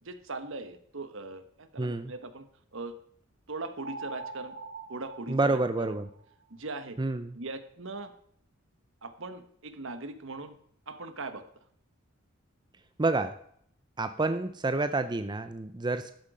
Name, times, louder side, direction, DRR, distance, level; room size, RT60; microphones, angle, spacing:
voice 1, 0.0-3.0 3.5-4.6 4.9-6.0 6.5-7.0 7.3-8.1 9.0-10.6 10.9-11.4, right 3 dB, 65° right, 10 dB, 1.3 m, -40 dB
voice 2, 1.8-2.1 5.3-6.1 7.0-7.3 13.0-13.3 14.0-16.1, right 2 dB, 20° right, 10 dB, 0.6 m, -28 dB
sound 1, 3.8-6.3, right 3 dB, 45° right, 6.7 m, -43 dB
13.0 x 10.5 x 5.0 m, 0.65 s
head